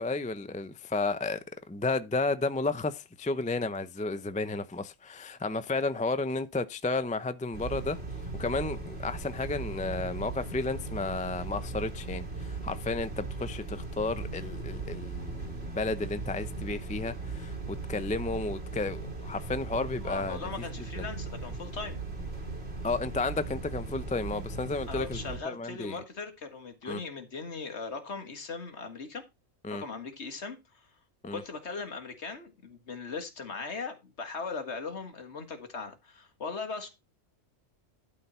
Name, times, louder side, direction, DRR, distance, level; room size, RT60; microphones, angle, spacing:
voice 1, 0.0-1.4 1.7-8.0 8.4-20.4 21.0-21.1 22.8-26.0 26.8-27.0 29.6-29.8 31.2-31.4, left 3 dB, 10° left, 0.3 m, -32 dB
sound 1, 7.5-25.4, right 3 dB, 50° right, 2.4 m, -38 dB
voice 2, 20.0-22.0 24.9-29.2 29.7-30.9 31.3-36.9, left 4 dB, 60° left, 1.9 m, -39 dB
11.5 x 4.4 x 5.5 m
omnidirectional pair, 1.3 m